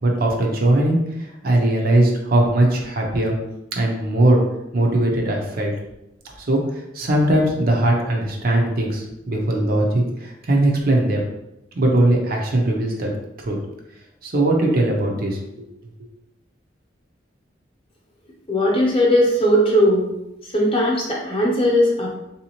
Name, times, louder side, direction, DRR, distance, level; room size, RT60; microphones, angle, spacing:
voice 1, 0.0-3.4 3.7-4.4 4.7-5.7 6.4-11.2 11.8-13.1 13.4-13.6 14.2-15.6, right 1 dB, 50° right, 0 dB, 0.6 m, -20 dB
voice 2, 18.5-20.1 20.4-22.2, equal, 30° left, -2 dB, 0.8 m, -18 dB
3.5 x 2.7 x 2.9 m, 0.89 s
head